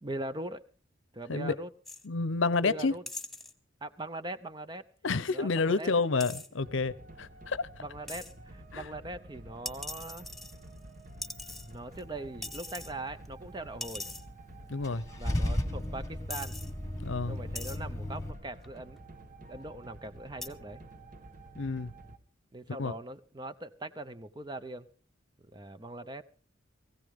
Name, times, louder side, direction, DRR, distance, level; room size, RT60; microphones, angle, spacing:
voice 1, 0.0-0.6 1.1-1.7 2.6-3.0 3.8-4.8 5.3-6.0 7.8-10.3 11.6-14.1 15.2-16.6 17.3-19.0 19.5-20.8 22.5-24.9 25.5-26.2, right 2 dB, 20° right, 0.7 m, -41 dB
sound 1, 1.9-2.1 3.1-3.5 6.2-6.5 8.1-8.3 9.7-10.8 11.2-12.0 12.4-12.9 13.3-13.4 13.8-14.2 15.2-15.3 15.8-15.9 16.3-16.7 17.6-17.8 18.6-19.0 20.4-20.5, left 2 dB, ahead, 1.1 m, -41 dB
voice 2, 2.0-2.9 5.0-7.7 8.7-8.9 14.7-15.0 17.0-17.4 21.6-21.9 22.8-22.9, left 4 dB, 75° left, 0.7 m, -29 dB
sound 2, 6.6-22.2, right 1 dB, 40° right, 1.3 m, -50 dB
Car / Engine starting / Idling, 14.8-18.3, left 1 dB, 15° left, 1.5 m, -34 dB
20.5 x 16.0 x 3.7 m
head